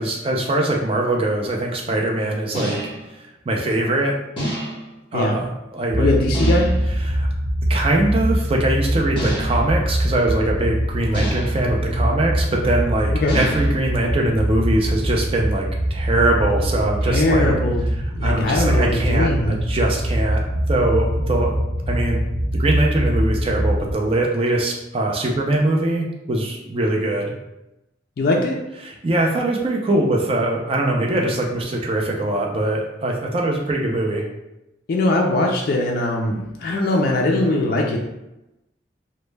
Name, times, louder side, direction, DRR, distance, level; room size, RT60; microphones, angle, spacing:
voice 1, 0.0-2.8 3.5-4.2 5.1-6.1 7.0-7.3 7.7-17.5 18.2-21.5 21.9-22.2 22.5-27.3 28.8-34.3, right 1 dB, 30° right, 0 dB, 0.4 m, -22 dB
sound 1, 2.5-3.1 4.4-5.0 6.3-6.9 9.2-9.8 11.1-11.7 13.3-13.9, equal, 30° left, 0.8 m, -28 dB
sound 2, 5.9-23.9, right 1 dB, 85° right, 0.6 m, -23 dB
voice 2, 6.0-6.8 13.1-13.4 17.1-19.6 28.2-28.6 34.9-38.0, left 2 dB, 50° left, -1 dB, 0.3 m, -21 dB
2.1 x 2.1 x 3.1 m, 0.92 s
head